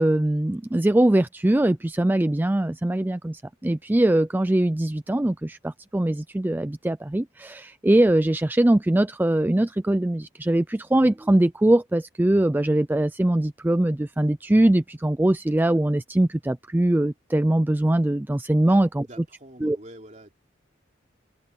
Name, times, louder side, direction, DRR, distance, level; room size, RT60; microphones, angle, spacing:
voice 1, 0.0-19.0 19.6-19.8, right 1 dB, 10° right, 0.3 m, -22 dB
voice 2, 18.7-20.3, right 1 dB, 35° right, 3.2 m, -46 dB
head